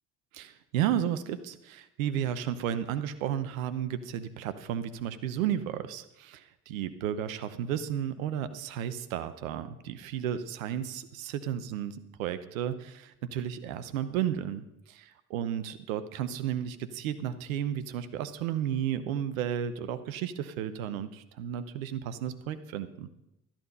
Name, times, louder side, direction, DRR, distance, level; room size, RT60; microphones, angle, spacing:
voice 1, 0.3-23.1, right 10 dB, 85° right, 13 dB, 0.8 m, -33 dB
13.0 x 8.8 x 5.3 m, 0.87 s
hypercardioid pair, 50°, 40 cm